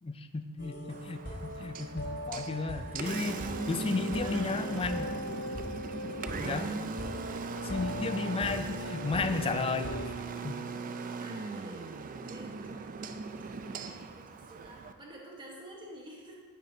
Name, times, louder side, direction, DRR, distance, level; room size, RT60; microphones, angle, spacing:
voice 1, 0.0-5.1 6.4-6.7 7.7-9.9 10.4-10.6, left 3 dB, 25° left, 9 dB, 0.4 m, -33 dB
sound 1, 0.6-10.0, equal, 55° left, 1.5 m, -40 dB
voice 2, 0.6-0.9 4.2-5.1 6.1-6.9 7.2-8.0 10.7-12.8 13.1-16.4, right 1 dB, 20° right, -2 dB, 1.2 m, -50 dB
Engine, 0.9-14.9, right 4 dB, 40° right, 0.4 m, -39 dB
9.7 x 7.3 x 2.8 m, 1.4 s
head